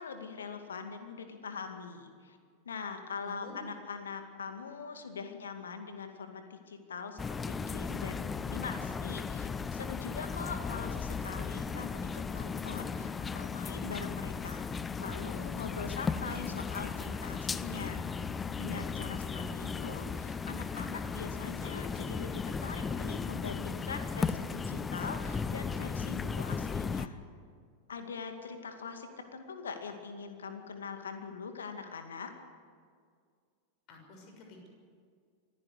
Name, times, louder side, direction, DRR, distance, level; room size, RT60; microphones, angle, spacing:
voice 1, 0.0-2.4 2.6-14.6 15.0-18.0 18.3-27.2 27.9-32.3, left 5 dB, 70° left, 6 dB, 2.2 m, -42 dB
voice 2, 3.2-3.6 19.2-20.0 33.9-34.7, left 2 dB, 40° left, 3 dB, 6.5 m, -48 dB
sound 1, 7.2-27.1, left 5 dB, 15° left, 0.7 m, -36 dB
25.0 x 15.5 x 8.1 m, 2.1 s
figure-of-eight pair, 90°, 0 cm